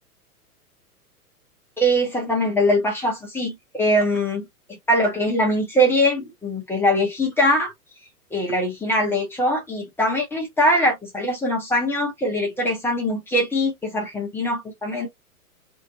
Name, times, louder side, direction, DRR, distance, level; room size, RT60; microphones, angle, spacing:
voice 1, 1.8-4.5 4.9-7.7 8.3-15.1, equal, 5° left, 0.8 m, -22 dB
2.8 x 2.6 x 2.8 m
figure-of-eight pair, 105°, 46 cm